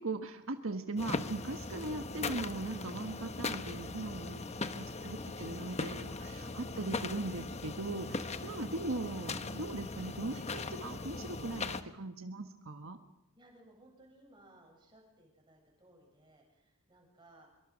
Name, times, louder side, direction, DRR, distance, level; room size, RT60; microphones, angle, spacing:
voice 1, 0.0-4.4 4.8-13.0, right 2 dB, 75° right, 7 dB, 1.4 m, -39 dB
sound 1, 1.0-11.8, left 3 dB, 30° left, 1.1 m, -39 dB
voice 2, 4.3-5.6 13.3-17.6, right 1 dB, 20° right, 1 dB, 7.5 m, -62 dB
24.5 x 23.5 x 6.3 m, 0.92 s
head